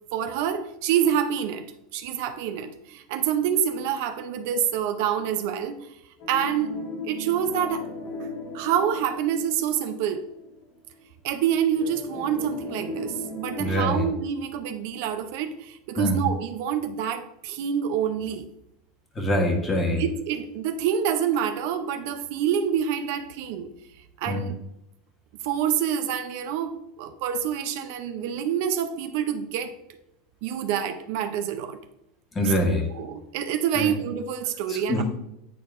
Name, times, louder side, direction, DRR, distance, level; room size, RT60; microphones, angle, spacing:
voice 1, 0.1-1.7 1.9-6.0 6.3-6.8 7.0-7.9 8.2-8.3 8.5-10.2 11.2-18.4 20.0-23.7 24.2-24.6 25.4-29.7 30.4-31.8 32.9-35.0, right 9 dB, 65° right, 8 dB, 0.5 m, -27 dB
sound 1, 6.2-10.6 10.9-11.0 11.7-13.9, left 1 dB, 70° left, 1.8 m, -36 dB
voice 2, 13.6-14.1 16.0-16.2 19.1-20.0 24.3-24.5 32.3-32.9 33.8-33.9 34.7-35.0, equal, 20° left, 1 dB, 1.3 m, -24 dB
9.2 x 4.2 x 2.5 m, 0.83 s
supercardioid pair, 150°, 0 cm